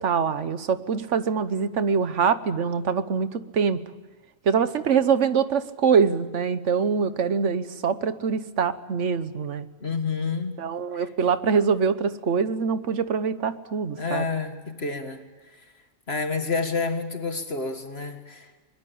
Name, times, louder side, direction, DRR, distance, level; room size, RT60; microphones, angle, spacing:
voice 1, 0.0-3.8 4.4-9.7 10.6-14.2, right 6 dB, 75° right, 12 dB, 1.4 m, -24 dB
voice 2, 9.8-10.6 10.9-11.1 14.0-15.2 16.1-18.5, left 4 dB, 55° left, 6 dB, 2.1 m, -29 dB
23.0 x 21.0 x 8.6 m, 1.2 s
omnidirectional pair, 1.3 m